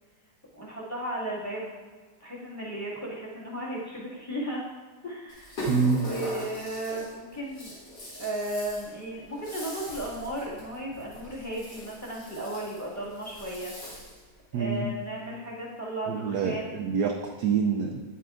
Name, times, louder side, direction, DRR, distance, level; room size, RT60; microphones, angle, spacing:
voice 1, 0.5-1.7 2.2-4.6 5.0-7.8 8.1-13.7 14.5-16.8, right 1 dB, 10° left, -6 dB, 1.8 m, -35 dB
Rattle (instrument), 5.3-14.3, equal, 60° left, 3.2 m, -41 dB
voice 2, 5.7-6.1 14.5-14.9 16.1-18.0, right 6 dB, 70° right, 2 dB, 1.0 m, -26 dB
9.3 x 8.2 x 2.5 m, 1.4 s
omnidirectional pair, 2.0 m